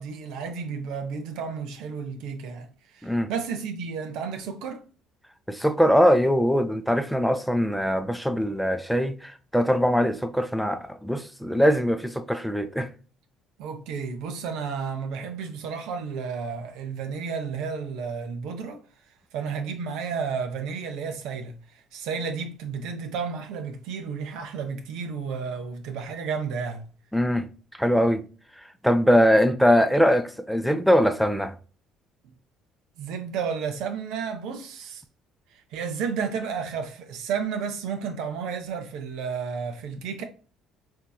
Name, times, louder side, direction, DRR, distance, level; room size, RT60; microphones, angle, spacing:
voice 1, 0.0-4.8 13.6-18.8 19.3-26.9 33.0-35.0 35.5-40.2, right 6 dB, 70° right, 0.6 m, -32 dB
voice 2, 5.5-12.9 27.1-27.5 27.8-28.3 28.8-31.6, equal, ahead, 0.5 m, -22 dB
4.5 x 2.7 x 2.2 m
hypercardioid pair, 55°, 0 cm